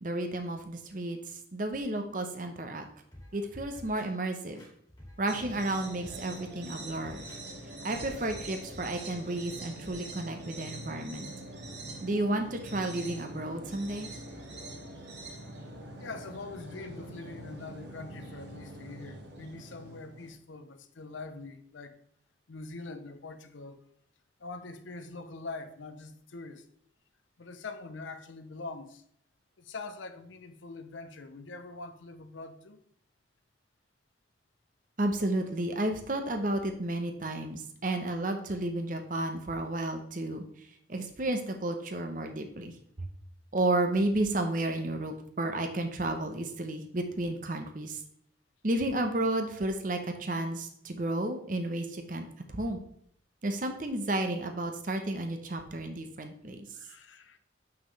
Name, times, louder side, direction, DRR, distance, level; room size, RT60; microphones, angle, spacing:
voice 1, 0.0-2.8 3.3-4.7 5.2-7.2 7.8-11.3 12.0-14.1 35.0-40.4 40.9-43.1 43.5-48.0 48.6-52.8 53.4-56.7, right 1 dB, 45° right, 0.8 m, -32 dB
sound 1, 3.1-4.1 4.6-5.7 6.0-6.4 6.8-7.4 7.9-8.0 8.3-9.1 9.4-9.5, left 1 dB, 20° left, 1.9 m, -51 dB
sound 2, 5.3-20.3, right 1 dB, 65° right, 1.5 m, -44 dB
voice 2, 16.0-22.0 22.5-23.8 24.4-26.7 27.4-29.0 29.6-32.8 56.7-57.4, left 3 dB, 85° left, 0.7 m, -43 dB
7.4 x 5.8 x 3.2 m
head